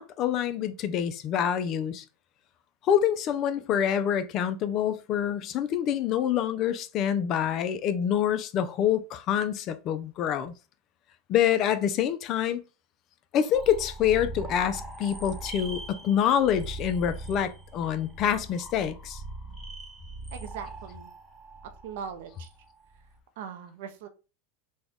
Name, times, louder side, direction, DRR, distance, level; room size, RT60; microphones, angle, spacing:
voice 1, 0.0-2.0 2.8-10.5 11.3-12.6 13.3-19.2, left 9 dB, 45° left, 0.5 m, -26 dB
sound 1, 13.5-23.2, right 2 dB, 10° right, 0.9 m, -41 dB
voice 2, 20.3-21.1 21.6-22.5 23.4-24.1, right 7 dB, 75° right, 0.7 m, -40 dB
4.1 x 2.3 x 3.5 m
supercardioid pair, 125°, 0 cm